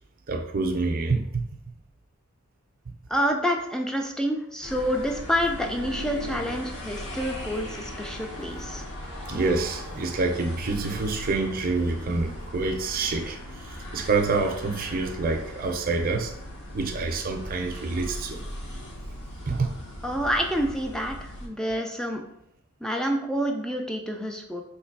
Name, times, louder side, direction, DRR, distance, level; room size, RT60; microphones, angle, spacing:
voice 1, 0.3-1.5 9.3-13.4 13.9-16.3 16.7-18.4 19.5-19.7, right 3 dB, 45° right, 3 dB, 0.5 m, -27 dB
voice 2, 3.1-8.8 20.0-22.2 22.8-24.6, equal, 5° left, 2 dB, 0.4 m, -28 dB
sound 1, 4.6-21.5, left 1 dB, 55° left, 1.4 m, -38 dB
3.3 x 3.1 x 4.6 m, 0.78 s
head